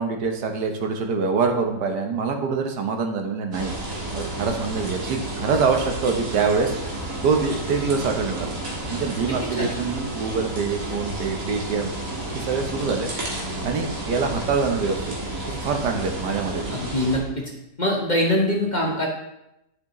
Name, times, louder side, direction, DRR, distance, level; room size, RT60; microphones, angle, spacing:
voice 1, 0.0-3.7 4.1-6.8 7.2-8.5 8.9-11.9 12.3-13.1 13.6-15.1 15.6-16.6, right 5 dB, 80° right, 4 dB, 1.5 m, -25 dB
sound 1, 3.5-17.2, right 1 dB, 50° right, 2.0 m, -31 dB
voice 2, 16.7-17.4 17.8-19.1, left 1 dB, 30° left, -2 dB, 1.0 m, -23 dB
10.5 x 6.0 x 3.0 m, 0.86 s
omnidirectional pair, 1.8 m